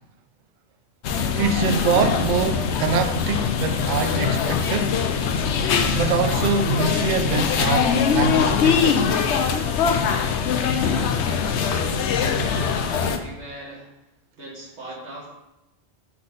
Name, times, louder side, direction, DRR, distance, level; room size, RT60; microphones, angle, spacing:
sound 1, 1.0-13.2, left 6 dB, 85° left, 0.9 m, -22 dB
voice 1, 1.4-5.0 5.9-9.0, right 5 dB, 60° right, 0.5 m, -24 dB
Marimba xylophone, 5.7-9.6, left 5 dB, 10° left, 0.7 m, -35 dB
voice 2, 10.8-14.0 14.4-15.3, right 1 dB, 85° right, 2.1 m, -39 dB
5.8 x 3.9 x 5.1 m
omnidirectional pair, 1.1 m